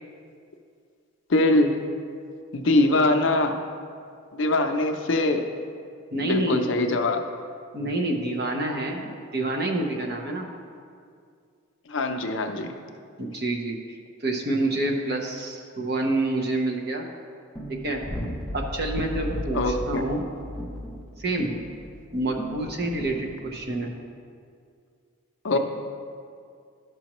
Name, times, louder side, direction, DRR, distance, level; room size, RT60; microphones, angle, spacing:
voice 1, 1.3-1.8 2.5-3.6 4.3-5.4 6.2-7.2 11.9-12.8 19.5-20.0 25.4-25.6, left 2 dB, 60° left, 5 dB, 0.5 m, -22 dB
voice 2, 6.1-6.7 7.7-10.5 13.2-13.8 14.2-17.1 17.7-18.0 18.5-20.2 21.2-21.5 22.1-23.9, right 2 dB, 45° right, 1 dB, 0.8 m, -27 dB
sound 1, 17.6-23.7, equal, 5° left, 0.5 m, -35 dB
12.0 x 6.1 x 3.0 m, 2.3 s
head